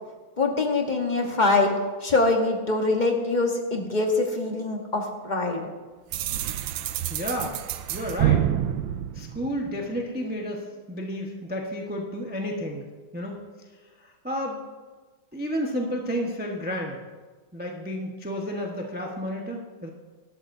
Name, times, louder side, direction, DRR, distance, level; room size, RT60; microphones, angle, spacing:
voice 1, 0.4-5.6, left 3 dB, 30° left, 2 dB, 1.1 m, -24 dB
sound 1, 6.1-10.0, right 11 dB, 80° right, 1.3 m, -27 dB
voice 2, 7.1-7.6 7.9-8.4 9.1-12.9 13.1-13.4 14.0-14.6 15.3-17.0 17.5-19.9, equal, 5° right, 0 dB, 0.8 m, -31 dB
18.0 x 12.5 x 2.7 m, 1.3 s
omnidirectional pair, 2.1 m